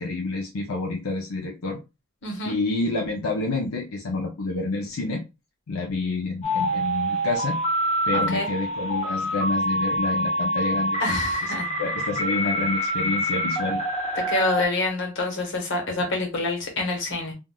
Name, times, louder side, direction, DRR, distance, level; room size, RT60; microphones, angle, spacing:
voice 1, 0.0-1.8 2.4-5.2 5.7-7.6 8.1-11.5 11.8-13.8 16.0-16.1, left 3 dB, 85° left, 0.6 m, -28 dB
voice 2, 2.2-2.6 8.1-8.5 11.0-11.8 14.3-17.3, left 2 dB, 60° left, 1.1 m, -27 dB
sound 1, 6.4-14.7, equal, 30° left, 0.8 m, -26 dB
3.5 x 2.4 x 2.3 m
head